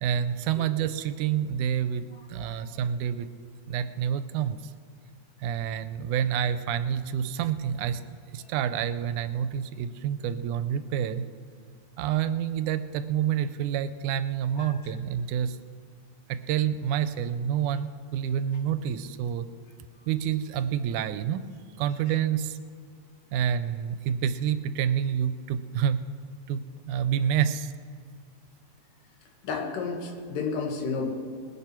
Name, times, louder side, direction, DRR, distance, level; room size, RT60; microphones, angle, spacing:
voice 1, 0.0-2.0 2.3-3.3 3.7-4.6 5.4-8.0 8.3-11.3 12.0-15.6 16.3-19.5 20.1-21.5 21.8-22.6 23.3-26.1 26.5-27.7, right 9 dB, 80° right, 12 dB, 2.0 m, -28 dB
voice 2, 2.1-2.6 14.6-14.9 29.4-31.1, left 4 dB, 90° left, 1 dB, 3.4 m, -32 dB
20.5 x 10.5 x 4.5 m, 2.2 s
omnidirectional pair, 3.7 m